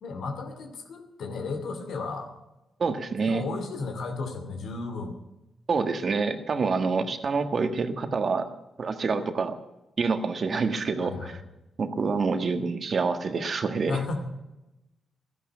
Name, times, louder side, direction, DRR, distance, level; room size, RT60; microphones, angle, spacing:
voice 1, 0.0-2.3 3.2-5.1 11.0-11.4 13.9-14.2, left 4 dB, 70° left, 5 dB, 2.5 m, -34 dB
voice 2, 2.8-3.4 5.7-8.5 8.8-9.6 10.0-11.3 11.8-14.0, right 4 dB, 55° right, 9 dB, 1.5 m, -27 dB
12.5 x 11.0 x 8.4 m, 0.96 s
hypercardioid pair, 45°, 0 cm